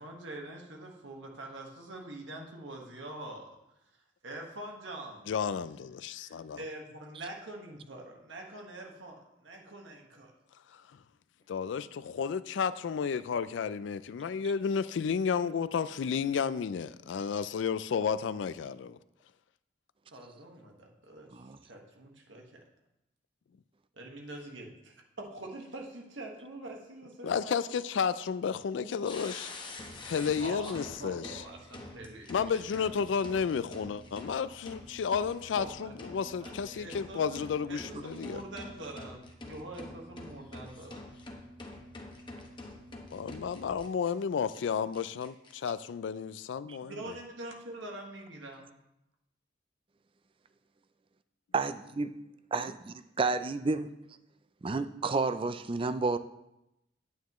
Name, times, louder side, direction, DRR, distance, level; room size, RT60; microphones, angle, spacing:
voice 1, 0.0-3.5 4.2-5.3 6.1-10.3 20.1-22.6 24.0-27.6 28.8-29.0 30.4-32.5 32.8-32.9 35.5-36.0 36.4-37.4 37.7-41.1 46.8-48.7, right 1 dB, 90° right, 1.5 m, -45 dB
voice 2, 5.3-6.6 10.7-10.8 11.5-19.0 27.2-29.5 30.1-31.4 32.3-38.4 43.1-47.2, left 6 dB, 75° left, 0.3 m, -32 dB
sound 1, 29.0-44.1 44.5-44.6 44.9-45.5, left 2 dB, 25° left, 1.0 m, -46 dB
voice 3, 51.5-52.2 52.5-52.7 53.2-53.9 54.6-56.2, right 3 dB, 30° right, 0.4 m, -30 dB
9.3 x 9.1 x 3.1 m
head